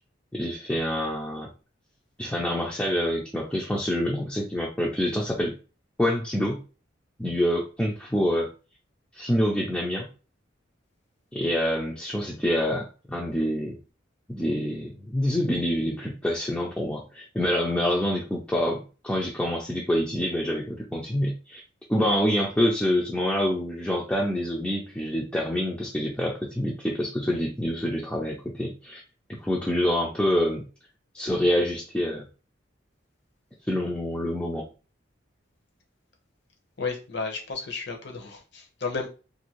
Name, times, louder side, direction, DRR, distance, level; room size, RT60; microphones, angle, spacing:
voice 1, 0.3-1.5 2.2-5.5 6.0-6.6 7.2-8.5 9.1-10.1 11.3-13.7 14.3-21.6 21.9-29.0 29.3-30.6 31.1-32.3 33.7-34.7, equal, 5° left, 0.4 m, -26 dB
voice 2, 36.8-39.1, left 4 dB, 60° left, 0.8 m, -32 dB
2.7 x 2.6 x 2.9 m
head